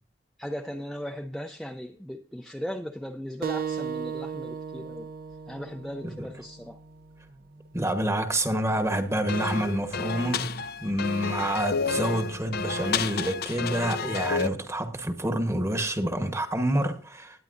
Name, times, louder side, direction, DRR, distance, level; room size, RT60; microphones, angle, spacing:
voice 1, 0.4-5.1 5.5-6.8, equal, ahead, 0.5 m, -37 dB
sound 1, 3.4-8.5, right 6 dB, 50° right, 0.7 m, -37 dB
voice 2, 7.7-17.4, right 1 dB, 15° right, 1.2 m, -28 dB
sound 2, 9.3-14.5, left 5 dB, 60° left, 0.5 m, -30 dB
19.0 x 9.3 x 2.6 m
head